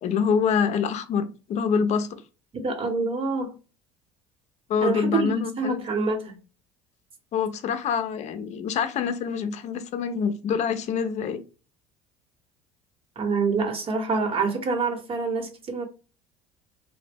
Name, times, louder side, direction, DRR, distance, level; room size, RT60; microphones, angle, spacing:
voice 1, 0.0-2.2 4.7-5.8 7.3-11.4, left 6 dB, 50° left, 0.6 m, -26 dB
voice 2, 2.5-3.6 4.8-6.4 13.2-15.8, right 4 dB, 40° right, 1.1 m, -26 dB
2.7 x 2.2 x 3.4 m
hypercardioid pair, 75°, 15 cm